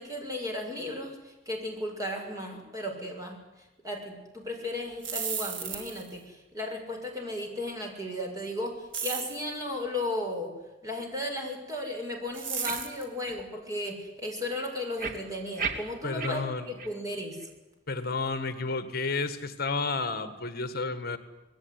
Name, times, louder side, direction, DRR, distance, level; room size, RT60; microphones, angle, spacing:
voice 1, 0.0-3.4 3.8-10.5 10.8-17.5, left 1 dB, 20° right, 2 dB, 6.5 m, -35 dB
sound 1, 4.9-6.1 8.9-9.5 12.3-13.0, right 6 dB, 70° right, 3.9 m, -34 dB
sound 2, 12.6-12.8 13.2-13.4 13.8-13.9 15.0-16.3 16.8-16.9 17.4-17.5, right 5 dB, 45° right, 3.3 m, -34 dB
voice 2, 16.0-16.8 17.9-21.2, left 3 dB, 55° left, 11 dB, 1.8 m, -31 dB
27.0 x 20.0 x 9.7 m, 1.1 s
head